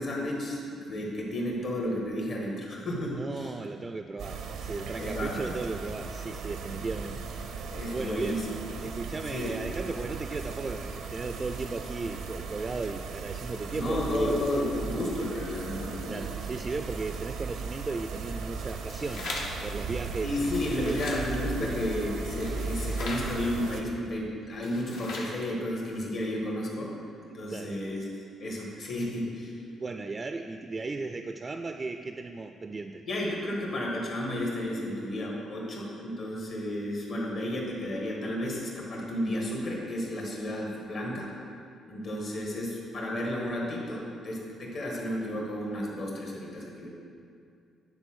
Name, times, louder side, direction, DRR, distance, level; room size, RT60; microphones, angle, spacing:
voice 1, 0.0-3.5 5.0-5.6 7.7-8.5 9.3-9.5 13.7-16.2 20.2-26.9 27.3-28.1 28.4-29.6 33.1-41.3 41.9-46.9, left 1 dB, 65° left, -3 dB, 1.8 m, -32 dB
voice 2, 3.1-7.2 7.5-7.6 7.9-8.4 8.8-14.3 16.1-19.3 19.6-21.1 21.6-21.8 27.5-27.8 29.8-33.0, right 3 dB, 30° right, 6 dB, 0.3 m, -36 dB
sound 1, 4.2-23.8, right 4 dB, 85° right, 0.6 m, -37 dB
sound 2, 18.7-19.7 20.3-21.2 22.4-23.3 24.5-25.4, left 2 dB, 90° left, 1.3 m, -39 dB
8.8 x 3.9 x 6.2 m, 2.4 s
cardioid pair, 90°, 0 cm